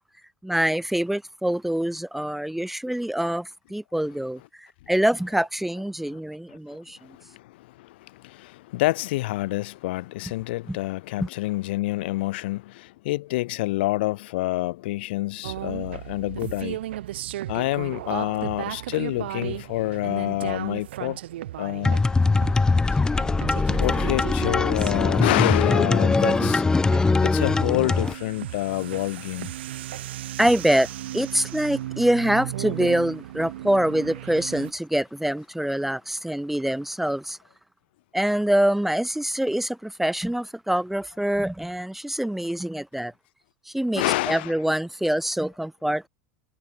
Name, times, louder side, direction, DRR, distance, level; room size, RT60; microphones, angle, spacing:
voice 1, 0.4-7.0 10.7-10.8 11.2-11.3 27.1-27.2 30.4-30.9 31.1-37.4 38.1-43.1 43.7-46.1, right 1 dB, 5° right, 0.9 m, -25 dB
voice 2, 4.9-5.3 6.0-6.2 6.5-6.6 7.0-16.8 17.5-21.2 21.6-22.0 23.7-26.8 27.2-29.5 43.9-44.7, left 18 dB, 75° left, 1.7 m, -28 dB
sound 1, 15.4-34.7, right 14 dB, 80° right, 0.5 m, -36 dB
sound 2, 21.8-28.1, left 3 dB, 10° left, 0.3 m, -21 dB
hypercardioid pair, 95°, 6 cm